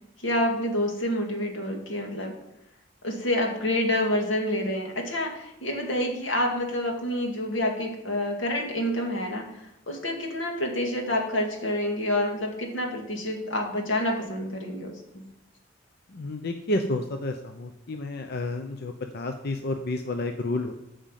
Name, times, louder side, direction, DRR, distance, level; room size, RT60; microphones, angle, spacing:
voice 1, 0.2-2.3 3.0-15.2, left 1 dB, 80° left, 1 dB, 2.1 m, -28 dB
voice 2, 16.1-20.8, left 2 dB, 60° left, 5 dB, 0.7 m, -30 dB
9.0 x 5.2 x 7.5 m, 0.82 s
head